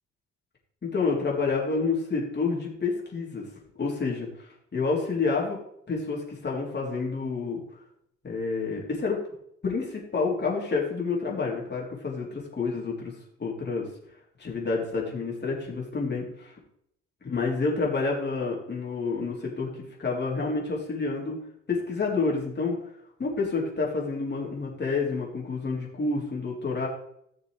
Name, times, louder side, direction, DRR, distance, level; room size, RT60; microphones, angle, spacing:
voice 1, 0.8-3.5 3.8-4.3 4.7-5.6 5.9-7.6 8.2-9.2 9.6-13.1 13.4-13.9 14.4-16.5 17.2-19.7 20.0-21.4 21.7-22.8 23.2-26.9, left 4 dB, 30° left, -2 dB, 3.8 m, -28 dB
16.0 x 6.6 x 3.5 m, 0.73 s
figure-of-eight pair, 50°, 35 cm